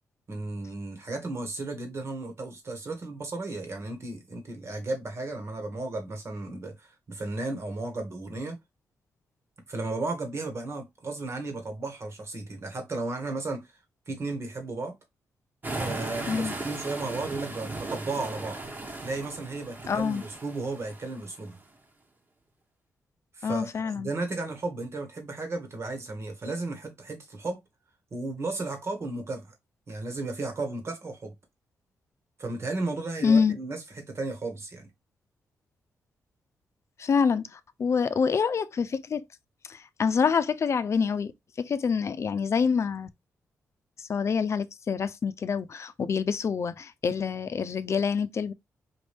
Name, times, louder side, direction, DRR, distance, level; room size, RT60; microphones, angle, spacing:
voice 1, 0.3-8.6 9.7-13.6 14.1-14.9 15.7-18.6 19.0-21.6 23.3-23.7 23.9-27.6 28.1-29.5 29.9-31.3 32.4-34.9, right 3 dB, 50° right, 1.9 m, -34 dB
sound 1, 15.6-21.5, right 2 dB, 35° right, 1.4 m, -37 dB
voice 2, 19.9-20.2 23.4-24.1 33.2-33.6 37.0-39.2 39.7-41.3 41.6-43.1 44.0-48.5, left 6 dB, 55° left, 0.6 m, -26 dB
5.1 x 2.7 x 3.5 m
cardioid pair, 60°, 6 cm